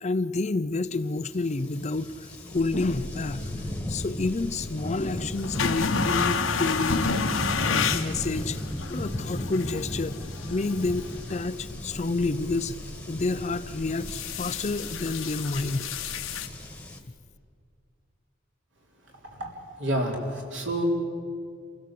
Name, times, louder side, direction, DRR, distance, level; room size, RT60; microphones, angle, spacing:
voice 1, 0.0-7.1 7.6-8.6 8.9-10.2 10.5-12.8 13.1-15.9, left 3 dB, 35° left, 13 dB, 0.5 m, -29 dB
sound 1, 1.0-17.0, left 1 dB, 5° left, 1.6 m, -37 dB
sound 2, 2.6-16.5, left 5 dB, 85° left, 1.4 m, -32 dB
voice 2, 19.2-20.8, right 1 dB, 60° right, 1 dB, 3.8 m, -30 dB
28.0 x 16.5 x 7.6 m, 2.2 s
head